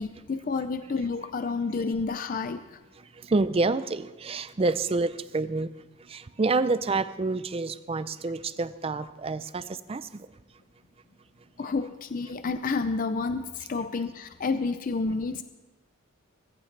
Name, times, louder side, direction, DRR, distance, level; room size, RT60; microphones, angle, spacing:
voice 1, 0.0-2.8 8.9-9.0 11.6-15.4, left 4 dB, 40° left, 10 dB, 0.4 m, -30 dB
voice 2, 3.0-5.7 6.0-10.3, right 3 dB, 25° right, 14 dB, 0.4 m, -28 dB
22.0 x 14.5 x 3.3 m, 1.2 s
head